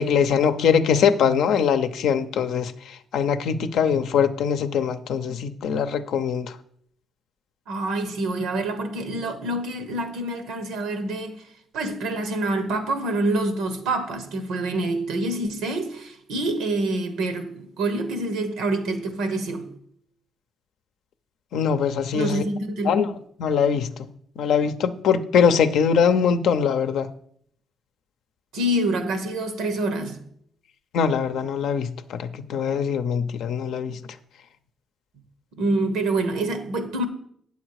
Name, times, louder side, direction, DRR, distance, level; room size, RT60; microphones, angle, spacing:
voice 1, 0.0-6.6 21.5-22.4 22.8-23.1 23.4-23.9 24.4-27.1 30.9-34.0, left 7 dB, 75° left, 0.6 m, -22 dB
voice 2, 7.7-11.4 11.7-19.7 22.1-23.1 28.5-30.2 35.6-37.0, right 2 dB, 90° right, 1.1 m, -26 dB
8.9 x 7.0 x 4.7 m
cardioid pair, 90°, 0 cm